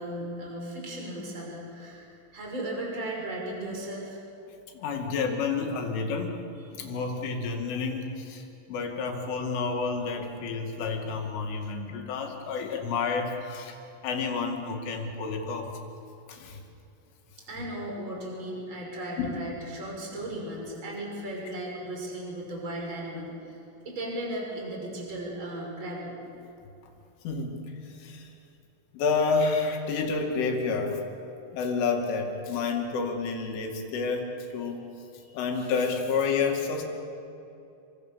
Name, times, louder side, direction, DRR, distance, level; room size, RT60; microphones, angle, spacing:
voice 1, 0.0-4.2 6.6-6.7 17.5-23.6 23.8-26.2 35.2-35.4, right 1 dB, 25° right, -1 dB, 6.2 m, -36 dB
voice 2, 4.7-6.4 6.7-15.7 16.3-16.6 19.2-19.3 27.2-28.3 28.9-31.0 31.5-34.9 35.3-36.8, left 4 dB, 75° left, 2 dB, 5.0 m, -30 dB
29.0 x 24.5 x 7.1 m, 2.7 s
omnidirectional pair, 5.6 m